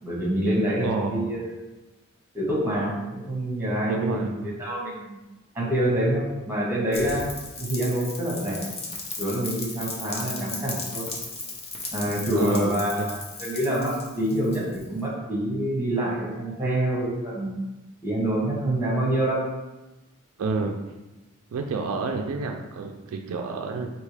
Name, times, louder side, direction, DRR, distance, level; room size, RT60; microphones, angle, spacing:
voice 1, 0.0-1.5 2.3-5.2 5.5-7.3 7.6-8.7 9.2-11.1 11.9-17.6 18.0-19.4, right 1 dB, 10° right, -5 dB, 1.3 m, -26 dB
voice 2, 0.8-1.3 3.9-4.5 12.4-13.1 20.4-20.8 21.5-23.9, right 4 dB, 75° right, 4 dB, 0.4 m, -29 dB
Rain, 6.9-15.0, left 3 dB, 25° left, 0.6 m, -36 dB
4.6 x 2.8 x 3.3 m, 1.1 s
head